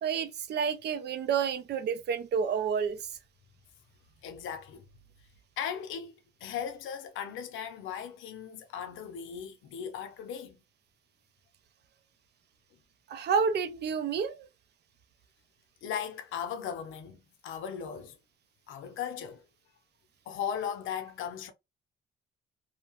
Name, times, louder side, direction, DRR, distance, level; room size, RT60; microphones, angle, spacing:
voice 1, 0.0-3.0 13.1-14.5, right 6 dB, 55° right, 0.5 m, -29 dB
voice 2, 4.2-4.8 5.6-10.6 15.8-18.2 18.7-19.4 20.3-21.5, left 8 dB, 80° left, 0.6 m, -37 dB
2.7 x 2.1 x 2.8 m
cardioid pair, 90°, 20 cm